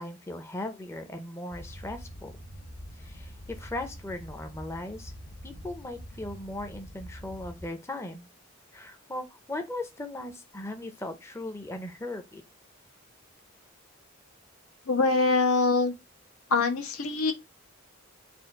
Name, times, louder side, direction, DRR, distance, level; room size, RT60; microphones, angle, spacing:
voice 1, 0.0-2.3 3.0-5.1 5.4-8.3 8.7-12.4, left 1 dB, 10° left, 0.5 m, -38 dB
sound 1, 1.5-7.7, equal, 50° left, 1.5 m, -45 dB
voice 2, 14.9-15.9 16.5-17.3, left 3 dB, 85° left, 0.9 m, -24 dB
4.3 x 2.4 x 4.5 m
head